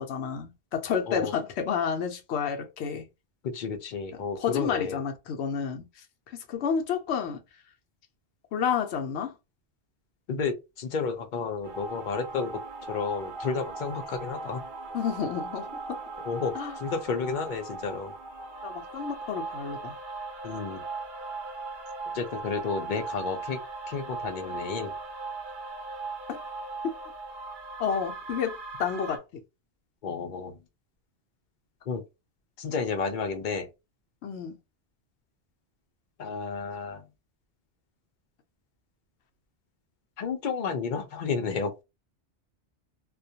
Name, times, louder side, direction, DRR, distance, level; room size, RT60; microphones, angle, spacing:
voice 1, 0.0-3.0 4.1-5.8 6.3-7.4 8.5-9.3 14.9-16.0 16.5-16.8 18.6-20.0 26.3-26.4 26.8-26.9 27.8-29.2 34.2-34.6, left 7 dB, 80° left, 0.8 m, -30 dB
voice 2, 3.4-5.0 10.3-12.6 12.9-14.6 16.2-16.5 16.8-18.1 20.4-20.8 22.1-23.6 23.9-24.9 30.0-30.5 31.9-32.0 32.6-33.7 36.2-37.0 40.2-41.8, left 5 dB, 55° left, 0.6 m, -31 dB
sound 1, 11.6-29.2, right 3 dB, 55° right, 0.7 m, -39 dB
2.3 x 2.1 x 2.7 m
omnidirectional pair, 1.1 m